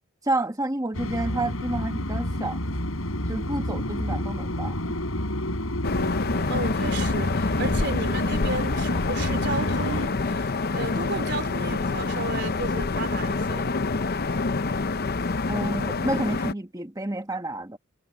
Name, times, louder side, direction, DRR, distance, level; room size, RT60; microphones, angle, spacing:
voice 1, 0.2-2.6 3.3-4.8 15.5-17.8, right 2 dB, 15° right, 1.3 m, -29 dB
sound 1, 0.9-10.1, left 1 dB, 80° left, 5.3 m, -29 dB
sound 2, 5.8-16.5, left 3 dB, 50° left, 0.7 m, -27 dB
voice 2, 6.5-13.7, right 3 dB, 55° right, 4.0 m, -33 dB
head